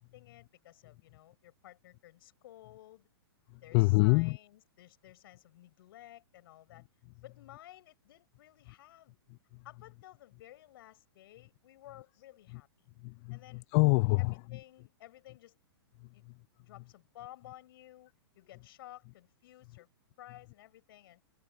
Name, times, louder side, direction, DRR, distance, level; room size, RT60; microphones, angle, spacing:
voice 1, 0.0-3.1 3.6-6.8 7.2-9.2 9.6-12.9 13.3-13.6 14.2-15.6 16.1-16.2 16.6-18.1 18.4-19.9 20.2-21.2, left 14 dB, 60° left, 7.4 m, -54 dB
voice 2, 3.5-4.4 9.3-9.6 12.5-12.6 13.0-14.6 16.0-16.4, left 27 dB, 40° left, 0.6 m, -28 dB
hypercardioid pair, 130°, 14 cm